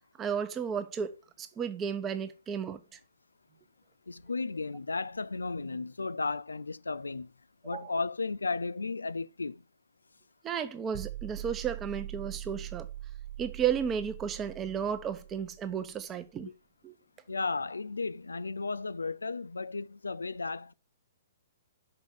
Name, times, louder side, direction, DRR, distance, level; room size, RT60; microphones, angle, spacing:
voice 1, 0.2-3.0 7.7-7.9 10.4-12.9 13.4-16.5 16.8-16.9, right 7 dB, 20° right, 1.0 m, -33 dB
voice 2, 4.1-7.3 7.6-9.6 16.5-16.6 17.3-20.7, left 3 dB, 80° left, 0.4 m, -34 dB
sound 1, 10.9-16.0, right 13 dB, 45° right, 0.3 m, -42 dB
6.3 x 5.3 x 6.8 m
figure-of-eight pair, 120°, 0 cm